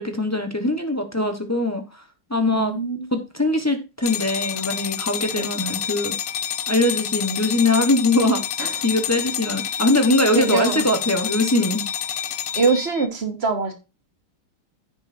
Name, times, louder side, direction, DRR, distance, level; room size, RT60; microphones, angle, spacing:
voice 1, 0.0-1.8 2.3-2.7 3.1-6.1 6.7-8.4 8.8-11.8, left 2 dB, 15° left, 0.5 m, -21 dB
voice 2, 2.5-3.1 5.4-5.5 8.6-8.8 10.3-10.8 12.6-13.7, right 4 dB, 35° right, 1.7 m, -23 dB
sound 1, 4.0-13.1, left 9 dB, 65° left, 0.9 m, -28 dB
15.0 x 5.4 x 2.6 m
omnidirectional pair, 2.2 m